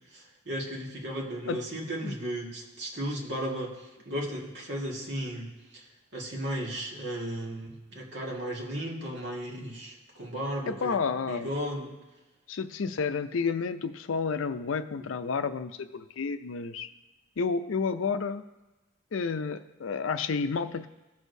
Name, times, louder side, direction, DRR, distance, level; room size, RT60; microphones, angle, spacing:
voice 1, 0.1-5.9 6.1-11.9, equal, 60° right, -2 dB, 1.8 m, -35 dB
voice 2, 10.7-11.5 12.5-16.9 17.4-18.4 19.1-20.9, left 5 dB, 80° left, 10 dB, 0.5 m, -30 dB
16.0 x 6.4 x 2.7 m, 1.1 s
head